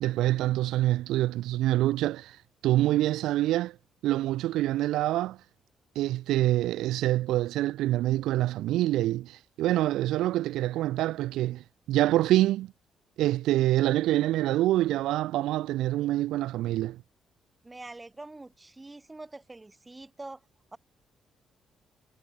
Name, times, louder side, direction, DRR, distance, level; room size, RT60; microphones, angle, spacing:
voice 1, 0.0-3.8 4.0-5.4 6.0-12.7 13.2-17.0, right 15 dB, 90° right, 0.7 m, -26 dB
voice 2, 17.6-20.4 20.7-20.8, right 2 dB, 15° right, 5.7 m, -44 dB
cardioid pair, 90°, 0 cm